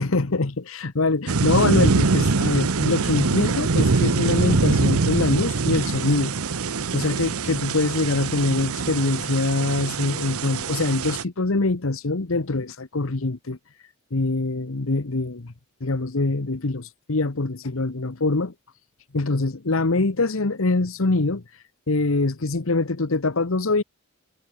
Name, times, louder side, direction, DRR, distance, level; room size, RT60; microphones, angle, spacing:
voice 1, 0.0-6.3 6.9-13.6 14.1-15.5 15.8-18.5 19.1-21.4 21.9-23.8, left 3 dB, 70° left, 1.1 m, -24 dB
sound 1, 1.3-11.2, right 4 dB, 90° right, 0.9 m, -23 dB
head